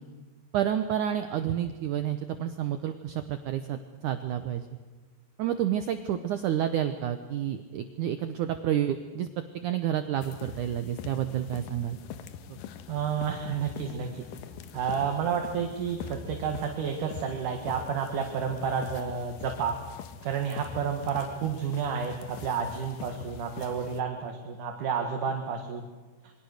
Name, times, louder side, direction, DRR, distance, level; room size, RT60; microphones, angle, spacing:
voice 1, 0.5-4.6 5.4-9.3 9.5-12.0 12.5-12.6, right 10 dB, 75° right, 9 dB, 1.9 m, -29 dB
sound 1, 10.2-24.0, left 8 dB, 70° left, 2.4 m, -44 dB
voice 2, 12.9-14.2 14.7-19.8 20.2-25.8, right 6 dB, 60° right, 3 dB, 2.9 m, -30 dB
27.5 x 23.0 x 6.6 m, 1.3 s
omnidirectional pair, 4.7 m